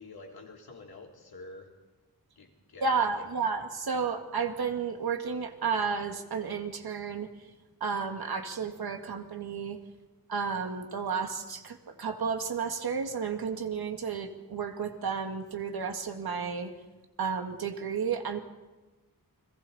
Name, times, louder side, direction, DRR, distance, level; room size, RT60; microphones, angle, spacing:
voice 1, 0.0-1.7 2.4-3.3, left 2 dB, 85° left, 0 dB, 3.5 m, -48 dB
voice 2, 2.8-7.3 7.8-9.8 10.3-16.7 17.2-18.4, right 5 dB, 90° right, 5 dB, 2.0 m, -32 dB
30.0 x 22.0 x 4.2 m, 1.1 s
wide cardioid pair, 135°, 36 cm